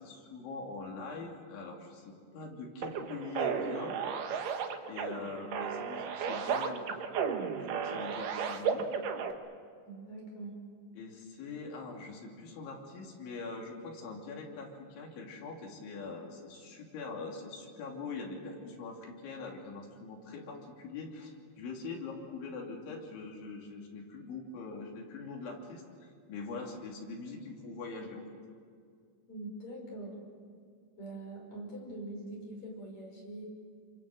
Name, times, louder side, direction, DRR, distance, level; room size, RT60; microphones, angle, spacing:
voice 1, 0.0-4.0 4.9-7.0 7.6-8.9 10.9-28.2, left 4 dB, 70° left, 0 dB, 5.2 m, -43 dB
sound 1, 2.8-9.3, right 6 dB, 75° right, 1.9 m, -34 dB
voice 2, 9.8-10.5 29.3-30.2 31.0-33.5, right 2 dB, 35° left, -1 dB, 6.3 m, -43 dB
28.5 x 25.0 x 7.8 m, 2.1 s
omnidirectional pair, 5.7 m